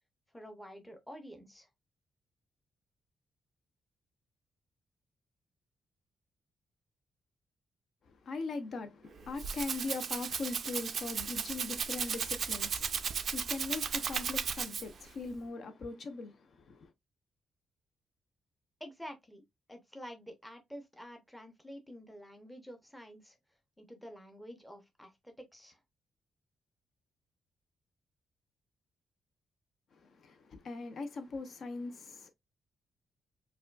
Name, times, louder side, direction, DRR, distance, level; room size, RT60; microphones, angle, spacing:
voice 1, 0.3-1.7 18.8-19.4 19.7-23.4 23.8-25.8, equal, 5° left, 0.7 m, -49 dB
voice 2, 8.0-16.9 29.9-32.3, left 3 dB, 50° left, 0.5 m, -41 dB
Rattle (instrument), 9.1-15.1, right 6 dB, 45° right, 0.3 m, -35 dB
4.8 x 2.2 x 2.2 m
wide cardioid pair, 165°, 0 cm